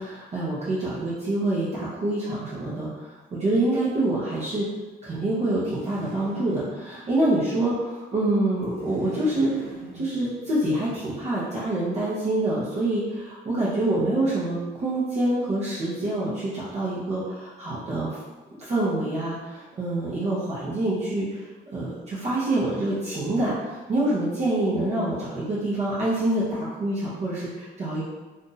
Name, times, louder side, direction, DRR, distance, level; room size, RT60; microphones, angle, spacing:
voice 1, 0.0-4.7 5.0-9.5 9.9-18.2 18.6-21.5 21.7-28.0, right 1 dB, 40° right, -8 dB, 0.9 m, -26 dB
sound 1, 5.4-7.1 8.5-10.7, right 2 dB, 90° right, 0.9 m, -43 dB
2.6 x 2.6 x 3.9 m, 1.2 s
cardioid pair, 110°, 17 cm